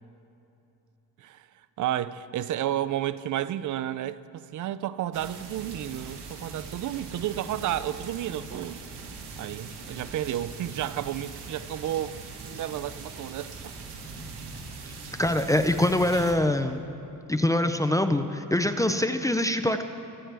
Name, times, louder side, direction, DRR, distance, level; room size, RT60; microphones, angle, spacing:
voice 1, 1.8-8.8 9.4-12.2 12.4-13.7, right 12 dB, 50° right, 0.5 m, -32 dB
sound 1, 5.1-16.3, right 4 dB, 85° right, 1.7 m, -41 dB
voice 2, 15.2-16.8 17.3-19.8, left 1 dB, 10° left, 0.4 m, -24 dB
23.5 x 8.8 x 3.4 m
cardioid pair, 105°, 40 cm